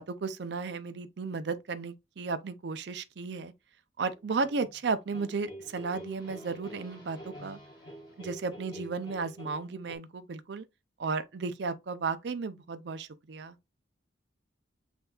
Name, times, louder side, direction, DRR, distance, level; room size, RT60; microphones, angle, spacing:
voice 1, 0.0-3.5 4.0-7.6 8.2-10.6 11.0-13.6, right 4 dB, 60° right, 0.5 m, -34 dB
sound 1, 4.1-10.0, right 1 dB, 25° left, 1.6 m, -47 dB
7.9 x 2.6 x 2.3 m
head